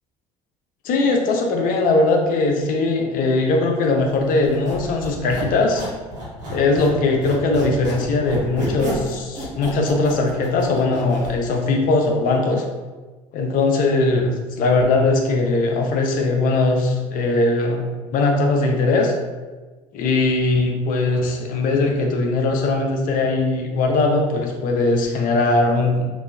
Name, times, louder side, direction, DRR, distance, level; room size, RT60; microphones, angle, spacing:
voice 1, 0.8-5.8 6.5-12.6 13.3-19.1 19.9-26.0, left 3 dB, 60° left, 2 dB, 0.6 m, -20 dB
Squeak, 4.4-7.0 7.2-11.3, equal, 55° right, 1.4 m, -30 dB
3.0 x 2.5 x 2.3 m, 1.3 s
hypercardioid pair, 70°, 16 cm